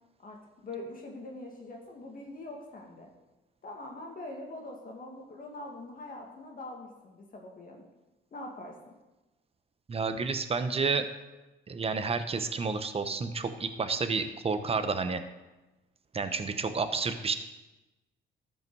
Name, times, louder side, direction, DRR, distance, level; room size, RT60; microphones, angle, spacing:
voice 1, 0.2-3.1 3.6-7.9 8.3-8.8, left 2 dB, 45° left, 0 dB, 1.8 m, -43 dB
voice 2, 9.9-11.0 11.7-15.2 16.1-17.3, right 4 dB, 30° right, 9 dB, 0.9 m, -30 dB
13.0 x 5.6 x 4.7 m, 1.1 s
cardioid pair, 90°, 20 cm